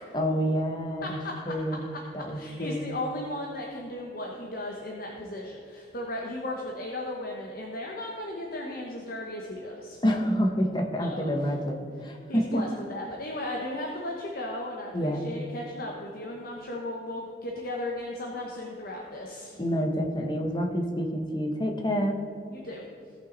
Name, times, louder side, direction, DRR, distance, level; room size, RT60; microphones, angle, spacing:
voice 1, 0.1-1.2 1.5-1.8 2.1-2.8 10.0-12.6 14.9-15.2 19.6-22.2, equal, 25° left, 3 dB, 1.1 m, -28 dB
voice 2, 1.0-1.3 1.9-2.0 2.3-10.0 11.0-11.3 12.3-19.6 22.5-22.8, left 1 dB, 55° left, -1 dB, 1.1 m, -36 dB
17.5 x 5.9 x 4.0 m, 2.6 s
head